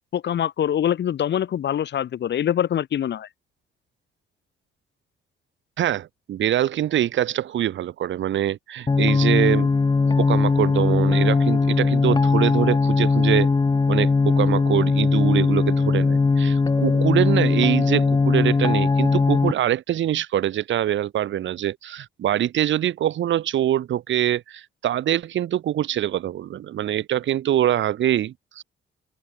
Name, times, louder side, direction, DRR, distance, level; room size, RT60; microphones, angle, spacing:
voice 1, 0.1-3.3, left 10 dB, 60° left, 2.0 m, -24 dB
voice 2, 5.8-9.7 10.0-13.5 13.9-28.6, right 11 dB, 70° right, 2.2 m, -24 dB
sound 1, 8.9-19.5, left 4 dB, 20° left, 0.9 m, -19 dB
open air
cardioid pair, 90°, 20 cm